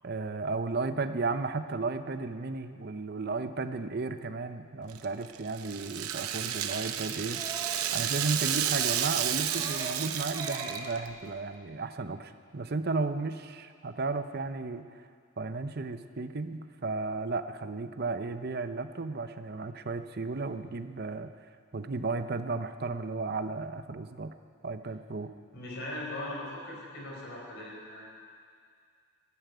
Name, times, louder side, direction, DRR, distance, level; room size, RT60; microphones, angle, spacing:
voice 1, 0.0-7.4 7.9-15.1 15.4-21.3 21.7-24.3 24.6-25.3, right 3 dB, 45° right, 10 dB, 0.7 m, -34 dB
Rattle (instrument), 4.9-11.1, right 10 dB, 85° right, 0.8 m, -32 dB
sound 1, 7.3-7.9 8.1-8.4 8.8-9.1 9.5-10.1 10.3-10.9 11.2-11.4, right 2 dB, 15° right, 2.2 m, -41 dB
voice 2, 25.5-28.1, left 1 dB, 50° left, -3 dB, 4.5 m, -39 dB
13.0 x 11.5 x 9.4 m, 2.1 s
head